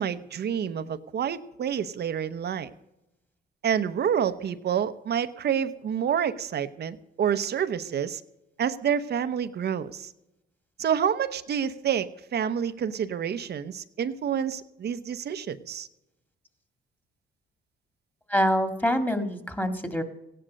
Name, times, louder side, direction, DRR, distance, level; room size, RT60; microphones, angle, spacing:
voice 1, 0.0-2.7 3.6-8.2 8.6-10.1 10.8-15.9, right 8 dB, 55° right, 12 dB, 0.8 m, -28 dB
voice 2, 18.3-20.0, equal, 10° left, 9 dB, 1.9 m, -25 dB
15.5 x 10.0 x 6.4 m, 0.90 s
cardioid pair, 90°, 20 cm